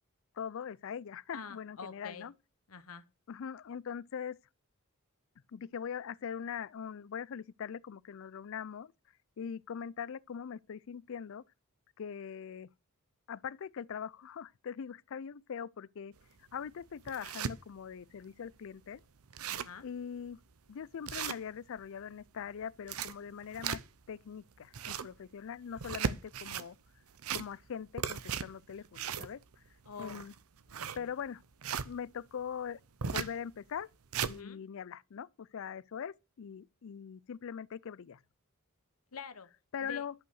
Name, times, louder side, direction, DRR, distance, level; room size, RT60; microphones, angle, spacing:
voice 1, 0.4-2.3 3.3-4.4 5.5-8.9 9.4-11.4 12.0-12.7 13.3-16.1 16.5-19.0 19.8-20.4 20.7-23.8 24.1-26.8 27.3-29.4 30.0-30.3 31.0-31.4 31.8-32.8 33.1-33.9 34.3-38.2 39.7-40.1, left 7 dB, 65° left, 0.4 m, -42 dB
voice 2, 1.3-2.3 2.7-3.0 19.5-19.8 29.8-30.3 30.7-31.1 34.2-34.6 39.1-39.5 39.8-40.0, left 5 dB, 85° left, 1.1 m, -47 dB
sound 1, 16.2-16.3 16.8-17.5 18.1-18.2 18.5-18.6 18.9-19.0 19.2-19.8 20.3-20.4 21.1-21.9 22.6-24.1 24.6-25.2 25.7-26.7 27.1-27.7 28.0-31.9 33.0-33.4 33.8-34.4, right 7 dB, 80° right, 0.7 m, -37 dB
11.5 x 5.6 x 6.3 m
head